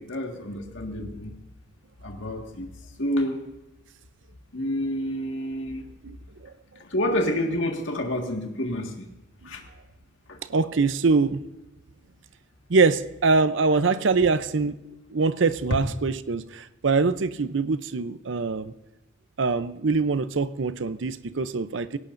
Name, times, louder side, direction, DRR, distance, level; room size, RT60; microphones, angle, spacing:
voice 1, 0.0-1.3 2.0-2.7 3.0-3.4 4.5-5.8 6.8-9.0 9.4-9.6 10.3-10.4, left 1 dB, 85° left, 2 dB, 1.8 m, -28 dB
voice 2, 10.5-11.4 12.7-14.8 15.1-18.7 19.4-22.0, right 4 dB, 80° right, 13 dB, 0.6 m, -23 dB
19.0 x 17.0 x 2.6 m, 1.0 s
head